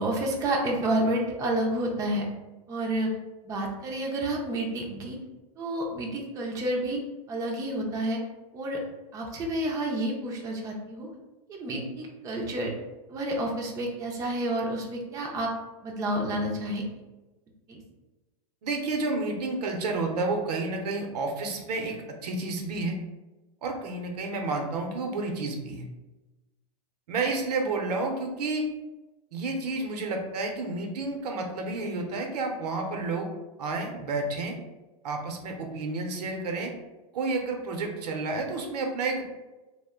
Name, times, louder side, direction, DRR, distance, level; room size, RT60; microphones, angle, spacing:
voice 1, 0.0-2.2 2.7-3.1 3.4-5.2 5.6-7.0 7.3-8.2 8.5-8.8 9.1-11.1 11.5-12.7 13.1-15.5 15.8-16.8 17.7-17.8, right 1 dB, 15° right, -1 dB, 0.4 m, -29 dB
voice 2, 18.6-22.0 22.2-23.0 23.6-25.8 27.1-28.6 29.3-33.3 33.6-34.5 35.0-36.7 37.1-39.2, right 3 dB, 80° right, 2 dB, 0.7 m, -30 dB
2.3 x 2.1 x 3.5 m, 1.1 s
hypercardioid pair, 135°, 20 cm